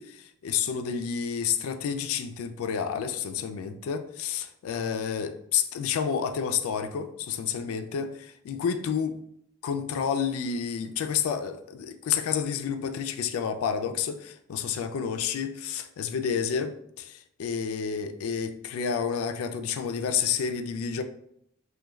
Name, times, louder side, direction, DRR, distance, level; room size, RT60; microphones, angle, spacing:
voice 1, 0.0-9.2 9.6-21.0, left 7 dB, 85° left, 0.3 m, -30 dB
3.0 x 2.2 x 2.2 m
head